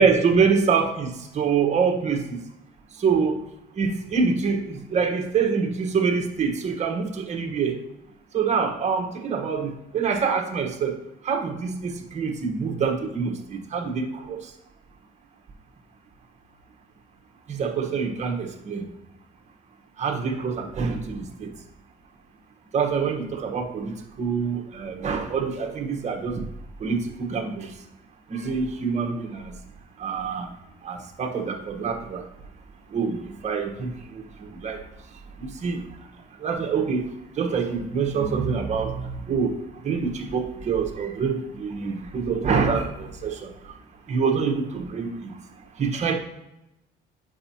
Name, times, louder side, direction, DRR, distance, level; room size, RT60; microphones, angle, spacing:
voice 1, 0.0-2.4 3.0-3.4 3.8-7.8 8.3-11.0 11.2-14.5 17.5-18.8 20.0-21.5 22.7-26.4 26.8-27.7 28.3-29.5 30.0-30.5 30.8-32.2 32.9-34.8 35.4-35.9 36.4-37.1 37.4-39.5 39.8-43.7 44.1-45.3 45.8-46.1, right 5 dB, 45° right, 3 dB, 1.2 m, -25 dB
7.7 x 5.5 x 2.8 m, 0.90 s
cardioid pair, 110°, 17 cm